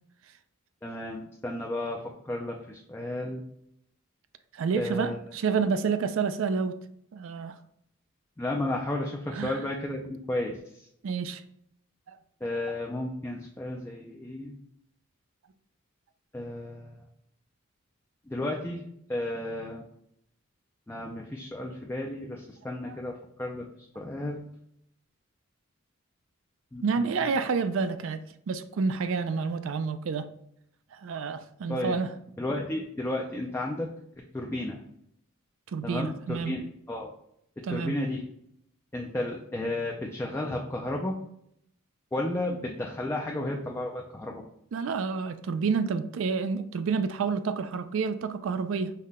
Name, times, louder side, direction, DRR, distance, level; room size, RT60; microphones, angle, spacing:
voice 1, 0.8-3.4 4.8-5.2 8.4-10.9 12.4-14.5 16.3-17.0 18.3-18.8 19.1-19.9 20.9-24.6 26.7-27.3 31.7-32.0 32.4-33.9 34.3-34.8 35.8-37.1 37.7-38.2 38.9-41.2 42.1-44.4, left 1 dB, 10° left, 0 dB, 0.3 m, -33 dB
voice 2, 4.5-6.8 7.1-7.5 9.3-9.6 11.0-11.4 12.1-12.2 26.8-30.3 31.0-32.1 35.7-36.6 37.6-38.0 44.7-48.9, right 5 dB, 65° right, 10 dB, 0.3 m, -29 dB
5.5 x 2.2 x 3.5 m, 0.72 s
head